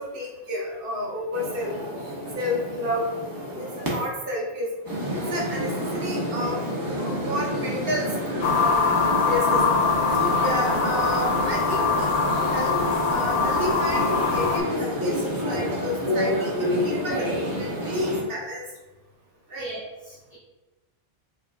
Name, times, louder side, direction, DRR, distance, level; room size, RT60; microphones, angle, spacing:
voice 1, 0.0-1.7 2.0-3.1 3.5-4.7 5.1-6.6 7.0-8.1 8.5-8.8 9.2-9.6 10.1-12.8 13.1-18.6 19.5-19.7, left 1 dB, 60° right, -3 dB, 1.1 m, -31 dB
sound 1, 1.3-4.1 4.8-18.2, equal, 20° right, 0.8 m, -28 dB
sound 2, 8.4-14.6, left 5 dB, 80° left, 0.8 m, -23 dB
voice 2, 19.6-20.4, right 2 dB, 25° left, -9 dB, 1.2 m, -39 dB
4.8 x 2.7 x 2.3 m, 1.1 s
omnidirectional pair, 1.1 m